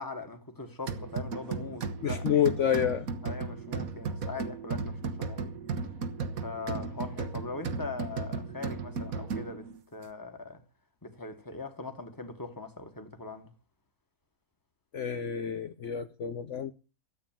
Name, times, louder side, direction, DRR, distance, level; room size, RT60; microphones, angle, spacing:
voice 1, 0.0-2.5 3.2-5.5 6.4-10.6 11.0-13.5, left 3 dB, 15° left, 1.7 m, -41 dB
sound 1, 0.9-9.8, right 4 dB, 75° right, 1.7 m, -35 dB
voice 2, 2.0-3.1 14.9-16.7, left 9 dB, 60° left, 1.1 m, -28 dB
13.5 x 8.7 x 7.5 m
omnidirectional pair, 1.5 m